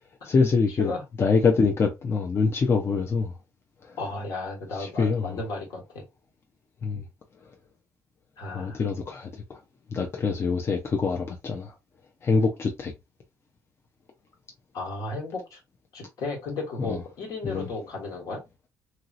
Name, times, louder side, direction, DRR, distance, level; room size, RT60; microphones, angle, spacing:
voice 1, 0.2-0.9 1.2-3.3 3.8-4.0 4.7-5.4 6.8-7.0 8.5-9.6 9.9-11.7 12.2-12.9 16.9-17.0 17.4-17.7, left 4 dB, 40° left, 0.6 m, -25 dB
voice 2, 4.0-6.0 8.4-8.8 14.7-15.6 15.9-18.4, left 3 dB, 70° left, 1.4 m, -34 dB
3.0 x 2.7 x 2.5 m
supercardioid pair, 75°, 6 cm